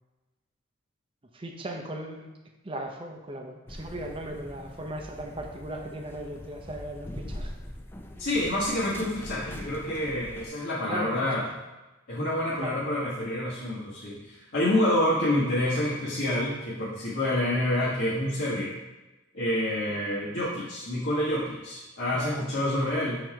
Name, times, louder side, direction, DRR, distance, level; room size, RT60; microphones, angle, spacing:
voice 1, 1.3-2.3 2.6-7.5 10.9-11.1 12.6-12.8 22.1-22.8, right 1 dB, 25° right, 2 dB, 0.6 m, -37 dB
sound 1, 3.7-10.5, left 1 dB, 10° left, 0.4 m, -42 dB
voice 2, 8.2-11.4 12.1-18.7 19.3-23.2, left 1 dB, 70° left, -9 dB, 1.3 m, -28 dB
6.1 x 3.9 x 4.6 m, 1.1 s
head